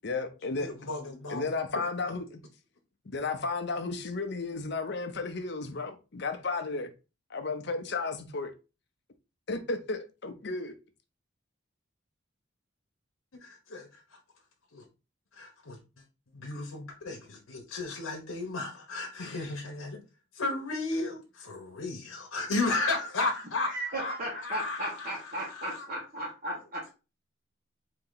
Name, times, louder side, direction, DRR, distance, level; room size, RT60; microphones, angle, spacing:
voice 1, 0.0-0.9 1.3-2.4 3.1-6.9 7.3-8.5 9.5-10.7, left 3 dB, 55° left, 0.6 m, -33 dB
voice 2, 0.6-1.4 13.4-13.9 14.7-14.8 15.4-15.8 16.3-20.0 20.4-24.1 24.4-25.8, left 2 dB, 90° left, 0.9 m, -34 dB
voice 3, 23.6-26.9, right 1 dB, 45° right, 1.1 m, -36 dB
4.2 x 2.8 x 3.9 m
head